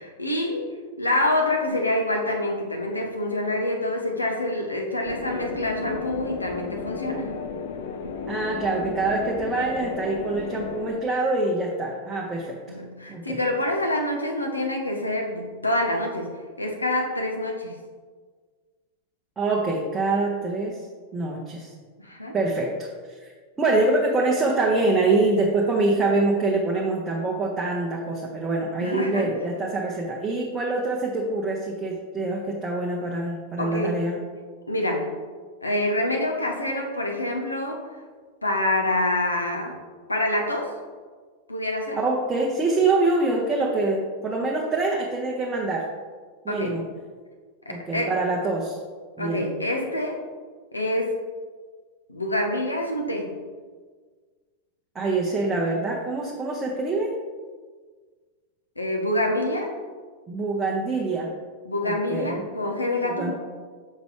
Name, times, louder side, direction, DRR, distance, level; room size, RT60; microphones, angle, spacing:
voice 1, 0.0-7.3 10.5-10.6 12.7-16.3 16.6-17.7 22.0-22.3 28.8-29.2 33.6-34.1 34.7-35.1 35.6-37.9 38.4-39.8 40.1-40.7 41.5-42.0 46.5-46.8 47.7-48.1 49.2-50.2 50.7-51.2 52.1-53.3 58.8-59.7 61.6-63.3, left 1 dB, 80° left, 1 dB, 0.9 m, -26 dB
sound 1, 5.0-10.9, left 5 dB, 55° left, 0.5 m, -34 dB
voice 2, 8.3-12.6 13.1-13.4 19.4-20.9 21.1-21.7 22.3-23.3 23.6-34.2 42.0-45.9 46.4-46.8 47.7-48.8 49.2-49.4 54.9-57.1 60.3-61.3 61.8-62.4 63.0-63.3, right 2 dB, 20° right, -2 dB, 0.8 m, -25 dB
6.5 x 5.1 x 3.2 m, 1.5 s
figure-of-eight pair, 90°, 0 cm